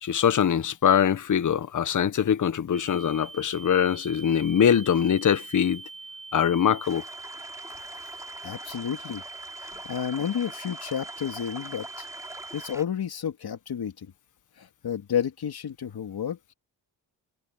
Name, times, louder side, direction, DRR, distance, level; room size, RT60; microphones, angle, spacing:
voice 1, 0.0-5.8 6.3-7.0, left 8 dB, 45° left, 1.0 m, -23 dB
Ear Ringing Sound, 2.7-12.8, right 3 dB, 50° right, 4.7 m, -43 dB
sound 1, 6.8-12.8, right 1 dB, 5° right, 3.4 m, -44 dB
voice 2, 8.4-9.2 9.6-12.1 12.5-14.1 14.6-16.5, left 8 dB, 60° left, 2.8 m, -31 dB
cardioid pair, 95°, 42 cm